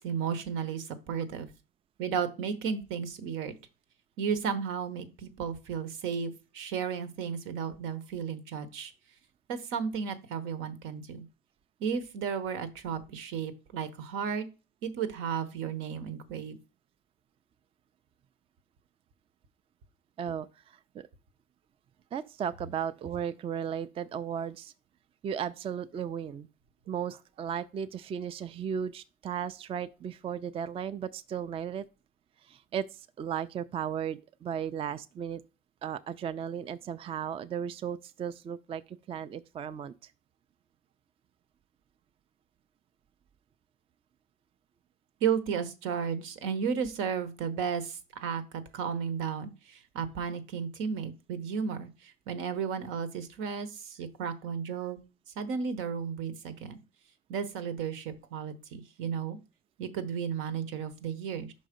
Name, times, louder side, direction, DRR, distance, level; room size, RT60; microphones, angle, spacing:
voice 1, 0.0-1.5 2.0-3.5 4.2-8.9 9.5-11.2 11.8-14.5 14.8-16.6 45.2-48.4 48.7-55.0 55.4-56.8 57.3-59.4 59.8-61.5, right 7 dB, 85° right, 1.0 m, -33 dB
voice 2, 20.2-21.1 22.1-24.7 25.2-26.5 26.9-31.9 32.4-35.4 35.8-40.1, right 8 dB, 30° right, 0.3 m, -35 dB
5.6 x 4.0 x 5.1 m
cardioid pair, 135°, 20 cm